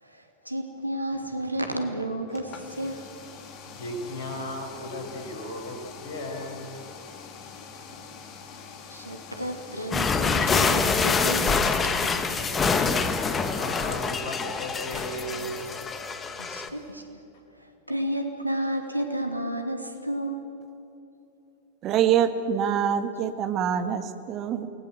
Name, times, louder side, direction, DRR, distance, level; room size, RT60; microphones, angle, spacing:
voice 1, 0.0-3.1 7.9-8.0 8.9-12.1 16.4-17.2 17.6-20.5, right 1 dB, 85° right, 4 dB, 2.7 m, -32 dB
sound 1, 2.3-16.9, left 6 dB, 35° left, 2.5 m, -45 dB
voice 2, 3.7-6.8 12.4-12.5 12.7-12.9 13.2-15.7, left 1 dB, 50° left, 3 dB, 5.7 m, -36 dB
sound 2, 9.9-16.7, left 4 dB, 20° left, 1.5 m, -25 dB
voice 3, 21.8-24.7, right 8 dB, 35° right, 9 dB, 1.7 m, -25 dB
28.5 x 20.0 x 7.7 m, 2.8 s
figure-of-eight pair, 90°, 0 cm